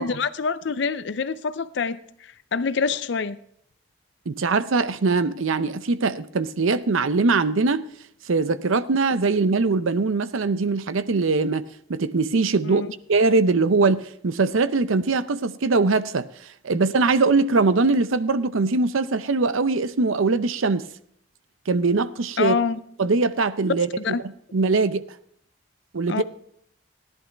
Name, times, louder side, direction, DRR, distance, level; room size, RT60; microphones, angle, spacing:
voice 1, 0.0-2.0 2.5-3.4 12.6-12.9 22.4-22.8 24.0-24.2 26.1-26.2, left 5 dB, 55° left, 0.5 m, -25 dB
voice 2, 4.3-7.9 8.3-11.6 11.9-12.8 13.1-16.3 16.6-20.8 21.7-22.6 23.0-23.9 24.5-25.0 25.9-26.2, right 3 dB, 80° right, 0.6 m, -21 dB
15.0 x 11.0 x 3.4 m
head